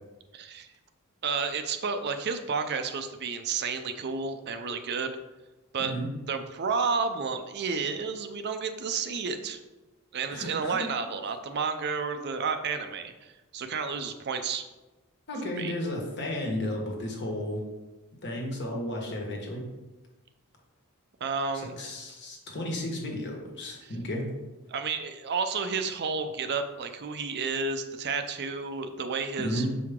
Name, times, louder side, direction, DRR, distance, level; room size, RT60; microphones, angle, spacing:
voice 1, 0.3-0.7 1.2-5.2 5.7-5.9 6.3-9.6 10.1-14.6 15.6-15.7 21.2-21.7 23.8-24.0 24.7-29.6, right 5 dB, 50° right, 8 dB, 0.5 m, -31 dB
voice 2, 10.3-10.9 15.3-17.6 18.2-19.6 21.8-24.3 29.4-29.7, left 1 dB, 50° left, 0 dB, 1.4 m, -33 dB
6.8 x 4.8 x 3.6 m, 1.1 s
head